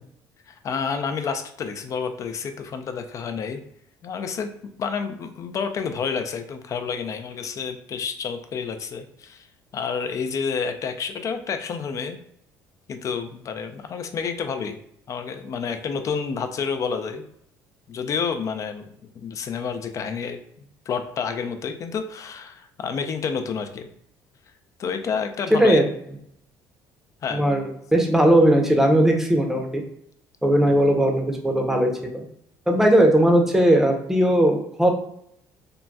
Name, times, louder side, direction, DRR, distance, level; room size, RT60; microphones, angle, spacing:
voice 1, 0.5-3.6 4.0-4.5 4.8-9.5 9.7-12.2 12.9-14.8 15.1-17.2 17.9-20.4 20.9-23.9 24.8-25.8 27.2-27.5, left 6 dB, 45° left, 7 dB, 0.4 m, -29 dB
voice 2, 25.5-25.8 27.3-29.8 30.4-32.1 32.7-34.9, right 1 dB, 5° right, 3 dB, 0.6 m, -18 dB
3.8 x 2.2 x 2.2 m, 0.72 s
supercardioid pair, 95°, 8 cm